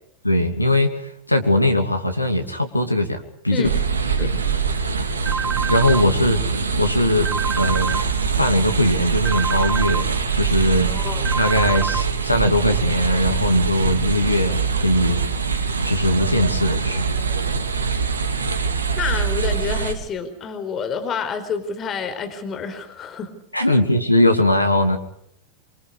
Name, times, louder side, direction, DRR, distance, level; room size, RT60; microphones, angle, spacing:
voice 1, 0.2-3.7 4.2-4.6 5.7-6.4 6.8-7.3 7.6-8.0 8.4-10.9 11.4-15.2 15.8-17.0 23.5-25.0, left 1 dB, 85° left, 6 dB, 2.7 m, -20 dB
sound 1, 3.6-19.9, right 5 dB, 70° right, 3.0 m, -23 dB
sound 2, 5.3-6.0 7.3-8.0 9.3-10.0 11.3-12.0, right 6 dB, 20° right, 1.9 m, -26 dB
voice 2, 10.8-11.2 19.0-23.3 23.7-23.8, left 6 dB, 25° left, 8 dB, 4.6 m, -28 dB
29.0 x 24.5 x 4.9 m, 0.72 s
figure-of-eight pair, 90°, 0 cm